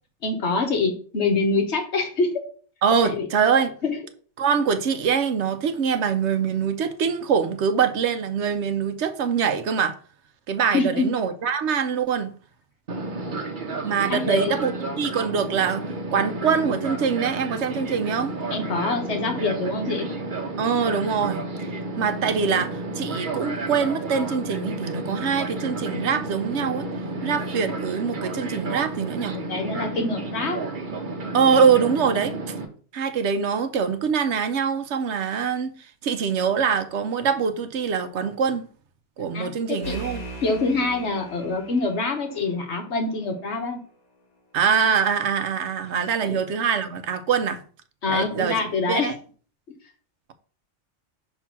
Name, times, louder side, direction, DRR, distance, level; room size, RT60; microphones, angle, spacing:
voice 1, 0.2-2.3 3.0-3.3 3.8-4.0 10.7-11.1 14.1-14.6 18.5-20.1 28.4-28.5 29.3-30.6 39.3-40.0 40.4-43.8 46.2-46.4 48.0-49.1, left 3 dB, 65° left, 1.5 m, -25 dB
voice 2, 2.8-3.7 4.4-10.0 10.5-12.4 13.8-18.3 20.6-21.4 22.0-26.9 27.2-29.4 31.3-32.3 32.9-35.7 36.0-38.7 39.2-40.2 44.5-47.6 48.1-48.5 48.9-49.1, right 6 dB, 75° right, 1.0 m, -24 dB
Fixed-wing aircraft airplane, 12.9-32.6, right 2 dB, 45° right, 1.1 m, -31 dB
sound 1, 39.8-43.3, right 2 dB, 35° left, 1.5 m, -39 dB
5.9 x 3.5 x 5.8 m
omnidirectional pair, 1.2 m